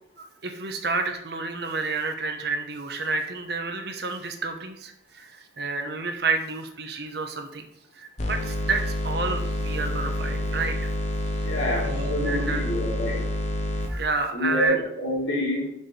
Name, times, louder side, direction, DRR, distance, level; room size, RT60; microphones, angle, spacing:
voice 1, 0.2-7.7 7.9-10.9 11.4-12.7 13.9-14.8, right 3 dB, 55° right, 5 dB, 1.0 m, -30 dB
sound 1, 8.2-13.9, left 1 dB, 35° left, 1.1 m, -28 dB
voice 2, 11.4-13.2 14.3-15.7, equal, 80° left, -4 dB, 3.0 m, -27 dB
6.5 x 4.8 x 5.2 m, 0.80 s
head